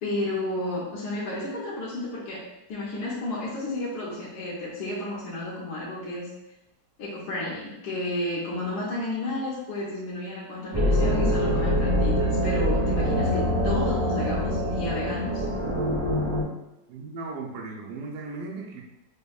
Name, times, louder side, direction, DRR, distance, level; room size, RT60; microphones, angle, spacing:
voice 1, 0.0-6.3 7.0-15.5, left 2 dB, 70° left, -6 dB, 1.2 m, -32 dB
sound 1, 10.7-16.4, equal, 15° right, 0.6 m, -24 dB
voice 2, 16.9-18.8, right 3 dB, 75° right, -1 dB, 1.1 m, -36 dB
5.1 x 2.1 x 2.3 m, 0.92 s
omnidirectional pair, 1.9 m